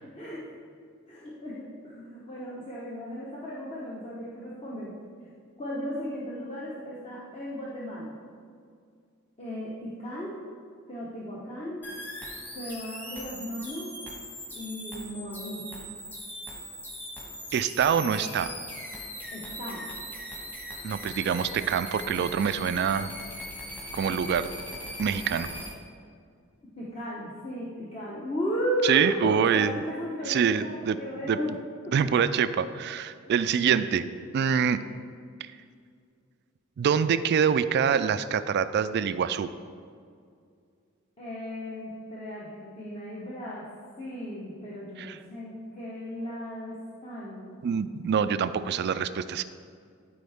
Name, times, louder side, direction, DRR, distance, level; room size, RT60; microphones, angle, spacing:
voice 1, 1.1-4.9 5.6-8.1 9.4-10.3 10.9-11.8 12.5-13.9 14.5-15.6 19.3-19.9 26.8-31.5 31.9-32.0 41.2-43.6 44.0-46.7 47.0-47.6, equal, 30° left, -7 dB, 1.1 m, -35 dB
sound 1, 11.8-25.7, equal, 10° left, 1.4 m, -40 dB
voice 2, 17.5-18.6 20.8-23.1 23.9-24.5 25.0-25.5 28.8-29.7 30.3-31.0 31.3-31.4 31.9-34.1 34.3-34.8 35.4-35.5 36.8-39.5 45.0-45.2 47.6-49.4, right 7 dB, 55° right, 13 dB, 0.3 m, -25 dB
13.5 x 4.6 x 3.5 m, 2.3 s
head